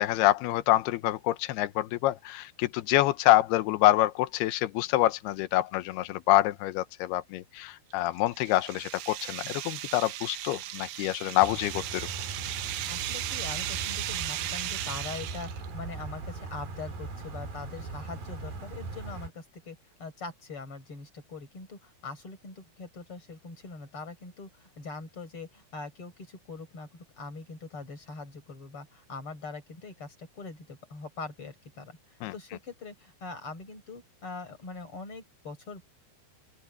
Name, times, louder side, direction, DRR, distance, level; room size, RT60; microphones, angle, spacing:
voice 1, 0.0-12.1 32.2-32.3, left 16 dB, 90° left, 2.2 m, -26 dB
sound 1, 7.9-15.7, right 13 dB, 70° right, 3.1 m, -36 dB
sound 2, 11.4-19.3, right 3 dB, 45° right, 6.6 m, -40 dB
voice 2, 12.9-35.8, left 3 dB, 25° left, 6.2 m, -42 dB
open air
omnidirectional pair, 5.8 m